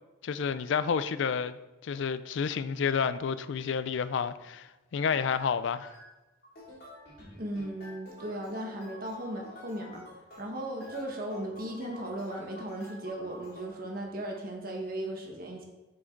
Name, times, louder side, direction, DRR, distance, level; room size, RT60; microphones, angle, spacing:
voice 1, 0.2-1.6 1.8-5.9, left 6 dB, 65° left, 0.4 m, -30 dB
sound 1, 5.3-5.5 5.8-6.1 6.4-13.7, left 1 dB, 45° left, 2.7 m, -49 dB
voice 2, 7.3-10.0 10.4-15.7, right 1 dB, 45° right, 1.4 m, -37 dB
7.6 x 6.2 x 3.9 m
head